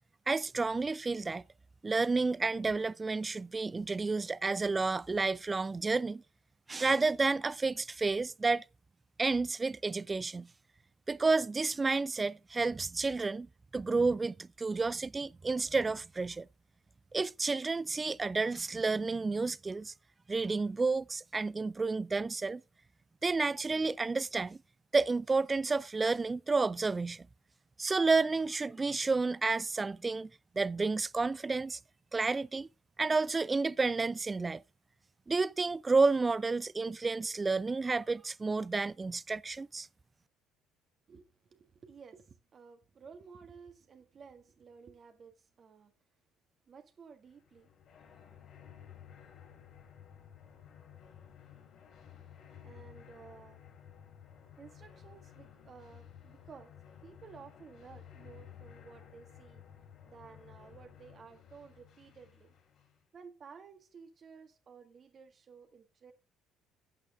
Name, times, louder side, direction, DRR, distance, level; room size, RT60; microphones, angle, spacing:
voice 1, 0.3-1.4 1.8-6.2 6.7-8.6 9.2-10.5 11.1-13.5 13.7-16.5 17.1-19.9 20.3-22.6 23.2-24.6 24.9-27.3 27.8-30.3 30.6-31.8 32.1-32.7 33.0-34.6 35.3-39.9, right 3 dB, 25° right, 0.5 m, -30 dB
voice 2, 41.1-45.9 46.7-47.7 52.6-53.6 54.6-56.7 57.0-59.6 60.1-62.5 63.1-66.1, right 5 dB, 40° right, 1.7 m, -54 dB
sound 1, 47.3-63.0, left 9 dB, 50° left, 4.0 m, -55 dB
12.5 x 8.9 x 3.6 m
figure-of-eight pair, 50°, 0 cm